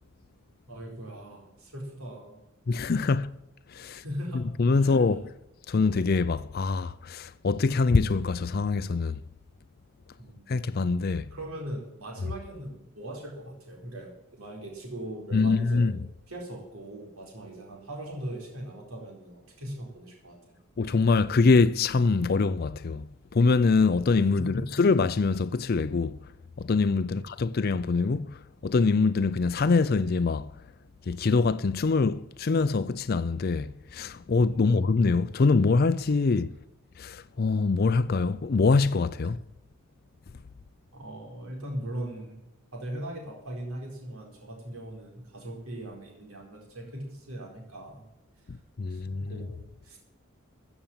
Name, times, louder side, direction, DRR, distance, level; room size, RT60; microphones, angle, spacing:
voice 1, 0.7-2.4 3.9-4.5 4.8-5.2 10.2-10.5 11.3-15.9 16.3-20.6 24.4-24.7 27.0-27.3 34.5-34.9 40.9-48.0 48.5-48.6 48.9-49.6 49.8-50.0, right 1 dB, 90° right, 4.4 m, -40 dB
voice 2, 2.7-3.4 3.7-4.0 4.3-5.2 5.7-9.2 10.5-11.3 15.3-16.0 20.8-23.1 23.3-26.2 26.6-28.4 28.6-30.5 31.1-36.5 37.0-39.4 48.8-49.3, left 4 dB, 45° left, 0.4 m, -24 dB
15.0 x 7.1 x 7.2 m
head